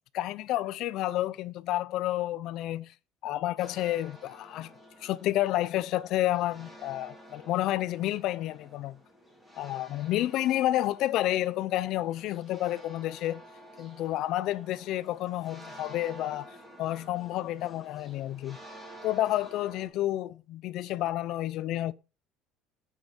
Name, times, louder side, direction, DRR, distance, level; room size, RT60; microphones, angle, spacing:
voice 1, 0.1-2.9 3.2-4.7 5.0-9.0 9.6-13.4 13.8-18.6 19.0-21.9, left 14 dB, 55° left, 0.6 m, -30 dB
sound 1, 3.6-19.9, right 1 dB, 5° right, 3.6 m, -51 dB
8.3 x 6.3 x 5.3 m
cardioid pair, 155°, 0 cm